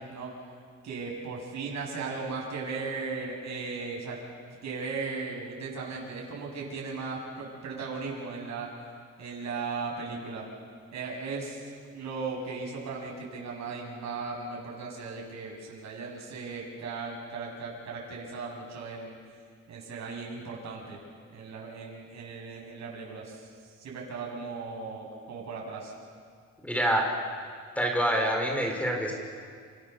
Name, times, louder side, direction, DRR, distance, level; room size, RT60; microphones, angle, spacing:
voice 1, 0.8-4.2 4.6-8.7 9.2-10.5 10.9-11.6 11.9-19.2 19.7-21.0 21.3-23.5 23.8-25.9, right 4 dB, 70° right, -2 dB, 7.8 m, -37 dB
voice 2, 26.6-27.2 27.8-29.1, right 1 dB, 5° left, 1 dB, 5.7 m, -26 dB
29.5 x 28.5 x 7.0 m, 2.1 s
cardioid pair, 120°, 29 cm